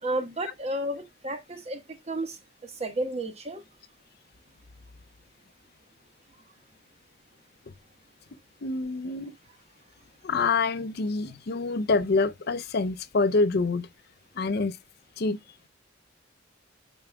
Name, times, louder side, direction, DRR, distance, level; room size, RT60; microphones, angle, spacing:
voice 1, 0.0-3.6, right 1 dB, 35° right, 1.3 m, -32 dB
voice 2, 8.6-9.3 10.2-13.9 14.4-14.8 15.2-15.4, left 3 dB, 55° left, 0.5 m, -26 dB
9.1 x 5.9 x 2.2 m
head